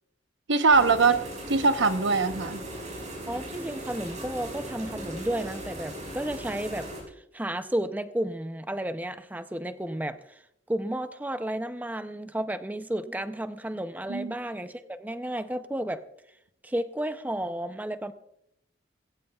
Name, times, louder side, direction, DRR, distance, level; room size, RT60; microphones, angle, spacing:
voice 1, 0.5-1.2 1.5-2.6 14.1-14.3, right 4 dB, 85° right, 9 dB, 1.0 m, -22 dB
sound 1, 0.7-7.0, right 1 dB, 40° right, 5.4 m, -38 dB
voice 2, 3.3-10.4 10.7-16.0 16.6-18.1, right 1 dB, 10° right, 9 dB, 0.5 m, -32 dB
21.0 x 16.5 x 2.3 m, 0.76 s
head